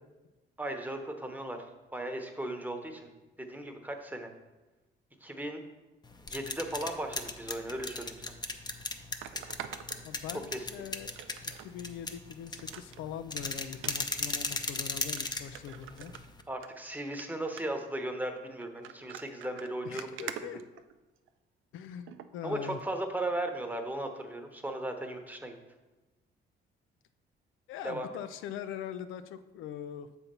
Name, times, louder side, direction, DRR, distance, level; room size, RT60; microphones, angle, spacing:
voice 1, 0.6-1.6 1.9-3.1 3.4-4.3 5.2-5.6 6.3-8.3 10.5-10.7 16.5-20.1 22.4-25.5 27.8-28.1, right 1 dB, 10° right, 4 dB, 0.9 m, -36 dB
sound 1, 6.0-16.4, left 3 dB, 20° left, 0.6 m, -37 dB
sound 2, 8.1-8.2 9.2-10.6 11.1-11.7 12.1-12.2 12.6-13.0 13.7-13.9 14.7-14.8 15.2-15.3 15.5-16.7 17.0-17.2 17.6-17.9 18.6-21.3 22.1-22.3 22.8-22.9, right 10 dB, 80° right, 0.4 m, -45 dB
voice 2, 10.0-11.2 11.6-16.1 19.8-20.6 21.7-22.8 27.7-30.2, left 9 dB, 85° left, 11 dB, 0.4 m, -42 dB
7.0 x 4.3 x 5.3 m, 1.1 s
cardioid pair, 90°, 20 cm